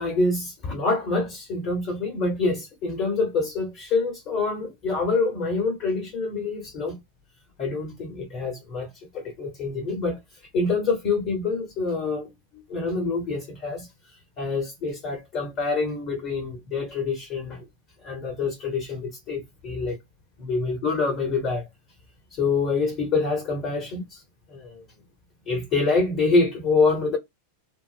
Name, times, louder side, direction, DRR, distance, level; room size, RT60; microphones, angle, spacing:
voice 1, 0.0-7.0 7.6-8.9 9.1-10.2 10.5-12.3 12.7-13.9 14.4-17.6 18.0-20.0 20.4-21.7 22.3-24.2 24.5-24.8 25.5-27.2, left 3 dB, 40° left, 1.1 m, -26 dB
3.6 x 2.0 x 2.5 m
figure-of-eight pair, 90°, 0 cm